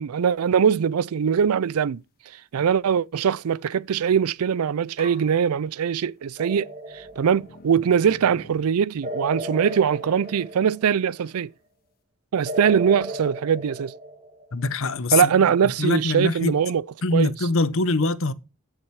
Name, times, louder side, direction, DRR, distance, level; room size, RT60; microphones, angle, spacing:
voice 1, 0.0-2.0 2.5-11.5 12.3-13.9 15.1-16.8 17.1-17.3, right 7 dB, 85° right, 0.4 m, -22 dB
sound 1, 4.4-4.5 5.0-6.3 6.9-9.2 9.7-11.5, left 2 dB, 45° left, 1.6 m, -48 dB
sound 2, 6.4-7.7 9.0-11.2 12.5-14.6, right 1 dB, 35° right, 1.9 m, -35 dB
voice 2, 14.5-16.6 17.0-18.3, left 3 dB, 65° left, 0.9 m, -24 dB
14.0 x 6.0 x 4.7 m
head